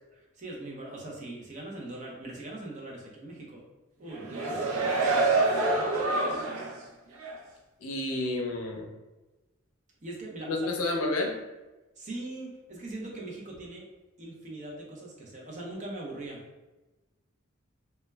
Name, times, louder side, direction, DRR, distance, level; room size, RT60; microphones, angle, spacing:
voice 1, 0.1-3.7 4.0-5.8 10.0-10.8 12.0-13.9 14.2-16.4, right 2 dB, 35° right, -2 dB, 0.6 m, -41 dB
sound 1, 4.1-6.8 7.2-7.3, right 2 dB, 90° right, 0.5 m, -26 dB
voice 2, 7.8-8.9 10.4-11.4, left 2 dB, 80° left, 1 dB, 0.5 m, -30 dB
2.2 x 2.1 x 3.2 m, 1.1 s
head